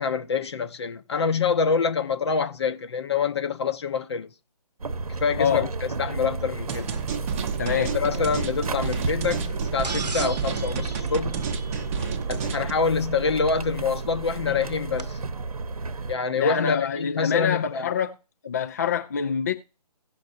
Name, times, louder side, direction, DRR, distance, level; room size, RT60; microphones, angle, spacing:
voice 1, 0.0-4.3 5.2-6.9 7.8-11.4 12.3-15.2 16.1-17.9, left 5 dB, 40° left, 0.8 m, -26 dB
sound 1, 4.8-16.1, right 4 dB, 60° right, 0.9 m, -32 dB
sound 2, 6.7-12.7, right 6 dB, 20° right, 0.8 m, -32 dB
voice 2, 7.6-8.0 12.0-12.1 14.5-14.6 16.3-18.1 18.4-19.5, left 7 dB, 25° left, 0.4 m, -26 dB
sound 3, 9.8-12.1 13.7-13.8 15.0-15.1, right 4 dB, 85° right, 0.9 m, -37 dB
17.5 x 6.1 x 2.6 m
figure-of-eight pair, 145°, 21 cm